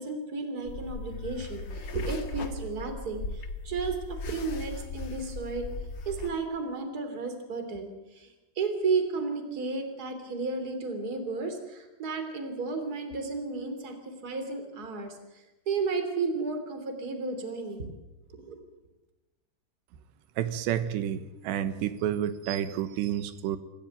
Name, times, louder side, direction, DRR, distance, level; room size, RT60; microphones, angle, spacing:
voice 1, 0.0-5.7 6.0-8.3 8.6-15.2 15.7-17.9 18.4-18.6, right 4 dB, 25° right, 7 dB, 3.1 m, -33 dB
sound 1, 0.7-6.3, left 2 dB, 75° left, 1.0 m, -38 dB
voice 2, 20.4-23.6, right 10 dB, 90° right, 12 dB, 3.4 m, -30 dB
25.5 x 15.0 x 9.3 m, 1.0 s
omnidirectional pair, 4.9 m